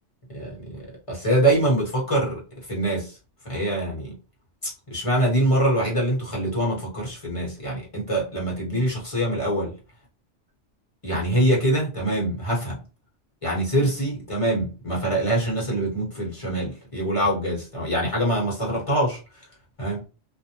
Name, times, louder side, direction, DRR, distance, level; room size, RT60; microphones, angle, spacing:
voice 1, 0.3-2.4 2.7-3.1 3.4-4.1 4.6-9.7 11.0-12.8 13.4-19.2 19.8-20.0, right 1 dB, 30° left, 1.0 m, -24 dB
2.5 x 2.0 x 2.8 m
omnidirectional pair, 1.2 m